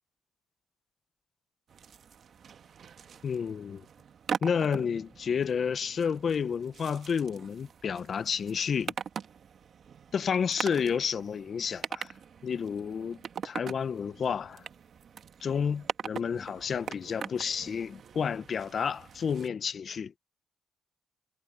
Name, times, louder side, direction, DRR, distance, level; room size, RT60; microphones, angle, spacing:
sound 1, 1.7-19.5, right 7 dB, 55° right, 1.7 m, -42 dB
voice 1, 3.2-3.8 4.4-8.9 10.1-12.1 12.4-13.2 13.4-14.6 15.4-20.1, left 6 dB, 50° left, 0.8 m, -30 dB
cardioid pair, 90°, 0 cm